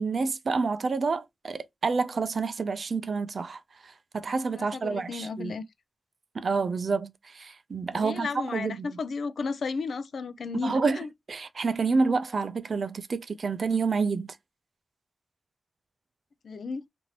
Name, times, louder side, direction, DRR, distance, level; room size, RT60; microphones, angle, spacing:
voice 1, 0.0-3.6 4.1-5.5 6.3-9.0 10.6-14.4, right 4 dB, 65° right, 0.3 m, -28 dB
voice 2, 4.5-5.6 7.9-11.1 16.4-16.8, left 4 dB, 80° left, 0.3 m, -33 dB
2.8 x 2.5 x 3.0 m
wide cardioid pair, 100°, 0 cm